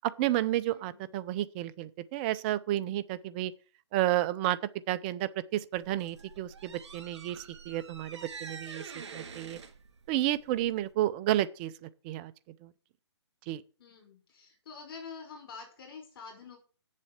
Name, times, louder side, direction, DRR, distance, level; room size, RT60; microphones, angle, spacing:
voice 1, 0.0-3.5 3.9-4.6 4.9-9.6 10.1-12.3 12.6-12.7 13.5-13.6, right 14 dB, 20° right, 0.5 m, -31 dB
voice 2, 0.7-1.1 13.8-16.6, left 5 dB, 55° left, 5.5 m, -47 dB
sound 1, 5.7-10.9, right 5 dB, 75° right, 3.1 m, -46 dB
8.5 x 7.4 x 8.0 m
hypercardioid pair, 155°, 15 cm